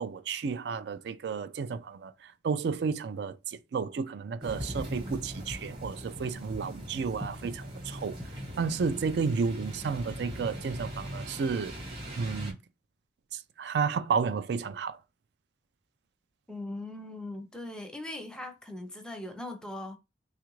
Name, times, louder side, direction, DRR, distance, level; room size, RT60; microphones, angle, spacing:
voice 1, 0.0-8.2 8.6-11.8 12.2-12.6 13.3-15.0, right 5 dB, 60° right, 0.3 m, -32 dB
sound 1, 4.4-12.5, equal, 25° right, 0.9 m, -40 dB
voice 2, 16.5-20.0, left 1 dB, 5° left, 0.5 m, -40 dB
3.3 x 2.4 x 3.0 m
head